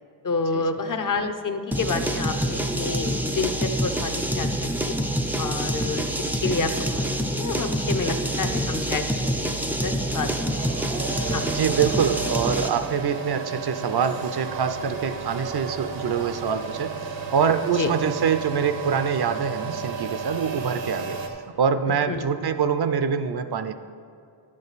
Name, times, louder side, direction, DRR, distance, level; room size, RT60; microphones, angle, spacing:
voice 1, 0.2-4.9 5.4-6.0 6.4-7.1 7.4-10.6 11.3-11.4 17.8-17.9 22.1-22.3, left 4 dB, 45° left, 7 dB, 0.6 m, -29 dB
sound 1, 1.7-12.9, right 1 dB, 5° right, 0.4 m, -26 dB
sound 2, 6.7-21.3, right 5 dB, 85° right, 1.0 m, -34 dB
voice 2, 11.5-16.9 17.3-21.2 21.6-23.7, right 7 dB, 60° right, 10 dB, 0.5 m, -25 dB
10.5 x 7.5 x 4.0 m, 2.5 s
wide cardioid pair, 130°, 44 cm